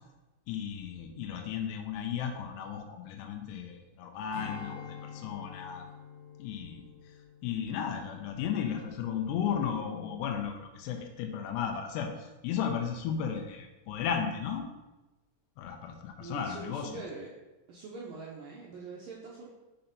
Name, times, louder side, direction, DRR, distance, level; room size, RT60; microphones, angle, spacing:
voice 1, 0.5-5.9 6.4-6.9 7.4-14.7 15.6-17.0, left 7 dB, 80° left, 3 dB, 2.8 m, -34 dB
Strum, 4.3-9.0 9.4-9.6, left 7 dB, 55° left, 2.2 m, -47 dB
voice 2, 16.2-17.4 17.7-19.5, right 3 dB, 80° right, -3 dB, 2.0 m, -43 dB
6.7 x 4.3 x 5.2 m, 1.1 s
omnidirectional pair, 5.0 m